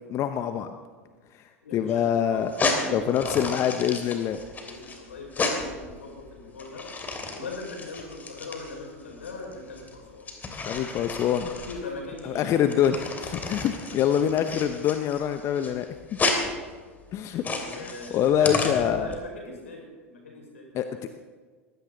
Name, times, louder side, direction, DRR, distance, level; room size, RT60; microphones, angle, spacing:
voice 1, 0.1-0.7 1.7-2.5 2.9-4.4 10.6-11.5 12.2-15.9 17.1-17.4 18.1-19.1 20.7-20.9, left 9 dB, 40° left, 8 dB, 0.9 m, -25 dB
voice 2, 1.6-3.6 4.6-6.9 7.3-10.3 10.7-12.5 13.2-13.9 17.5-21.1, left 3 dB, 80° left, 0 dB, 5.5 m, -41 dB
sound 1, 2.4-19.1, left 3 dB, 25° left, 3.0 m, -32 dB
21.5 x 16.5 x 4.0 m, 1.5 s
figure-of-eight pair, 85°, 7 cm